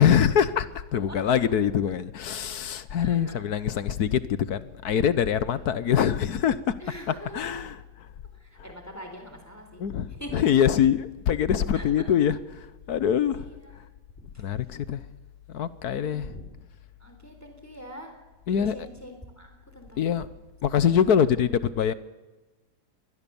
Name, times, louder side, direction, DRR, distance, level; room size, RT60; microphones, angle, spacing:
voice 1, 0.0-6.7 7.1-8.1 8.6-8.7 9.8-13.5 13.7-13.9 14.4-15.1 15.5-16.4 18.5-18.9 20.0-20.3 20.6-21.9, left 8 dB, 65° left, 1.4 m, -24 dB
voice 2, 3.0-3.7 6.8-7.6 8.3-9.8 10.1-10.4 11.7-12.1 13.3-13.8 14.3-14.4 15.9-16.5 17.0-18.1 18.5-20.2, equal, 10° left, 3.7 m, -43 dB
24.0 x 20.0 x 7.1 m
omnidirectional pair, 1.9 m